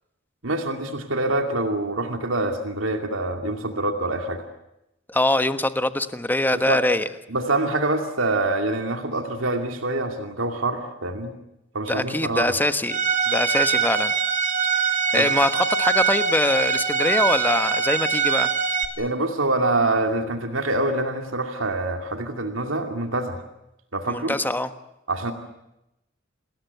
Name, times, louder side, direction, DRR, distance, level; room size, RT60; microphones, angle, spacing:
voice 1, 0.4-4.4 6.7-6.8 7.3-11.3 11.7-12.6 15.1-15.2 19.0-23.4 23.9-24.4 25.1-25.3, right 2 dB, 85° right, 5 dB, 2.5 m, -25 dB
voice 2, 5.1-7.1 11.9-13.0 13.3-14.1 15.1-18.5 24.1-24.7, left 1 dB, 10° left, 11 dB, 1.3 m, -23 dB
Bowed string instrument, 12.9-18.9, right 6 dB, 40° right, 2.8 m, -23 dB
28.5 x 21.0 x 8.1 m, 0.89 s
head